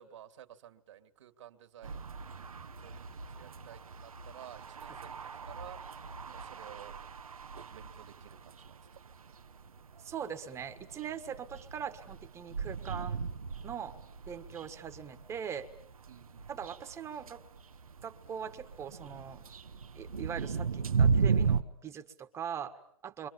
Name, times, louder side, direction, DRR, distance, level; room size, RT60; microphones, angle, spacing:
voice 1, 0.0-2.2 2.8-5.8 6.3-7.0 7.6-8.8 16.1-16.4 23.2-23.3, right 11 dB, 60° right, 8 dB, 2.6 m, -53 dB
sound 1, 1.8-21.6, right 5 dB, 90° right, 1.4 m, -36 dB
voice 2, 10.0-13.2 13.6-14.0 14.3-15.7 16.5-17.4 18.0-19.4 20.0-23.3, right 8 dB, 15° right, 8 dB, 1.6 m, -41 dB
29.5 x 25.0 x 7.2 m, 0.65 s
hypercardioid pair, 140°, 18 cm